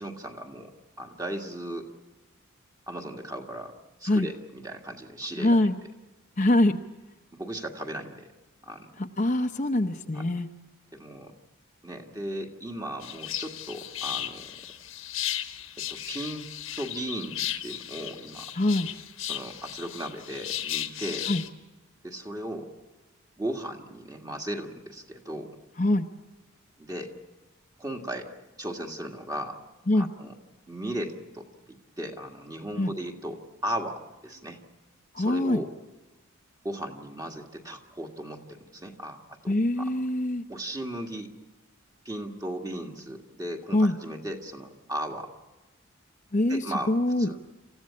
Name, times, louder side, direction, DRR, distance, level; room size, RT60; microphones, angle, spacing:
voice 1, 0.0-1.9 2.9-3.7 4.0-5.6 7.3-8.3 8.6-8.9 10.1-10.2 10.9-11.3 11.8-14.6 15.8-16.5 16.8-18.5 19.3-21.3 22.0-22.7 23.4-25.5 26.8-27.1 27.8-28.3 28.6-29.6 30.0-30.3 30.7-34.6 35.2-35.7 36.6-39.9 40.5-41.3 42.0-45.3 46.5-46.9 47.2-47.4, right 1 dB, 15° right, 2 dB, 1.8 m, -36 dB
voice 2, 5.4-5.8 6.4-6.8 9.0-10.5 18.5-18.9 21.3-21.4 25.8-26.1 29.9-30.1 32.8-32.9 35.1-35.6 39.5-40.4 43.7-44.0 46.3-47.3, left 1 dB, 35° left, 5 dB, 0.8 m, -24 dB
sound 1, 13.0-21.5, left 12 dB, 70° left, 1.3 m, -35 dB
27.5 x 15.0 x 8.6 m, 1.1 s
head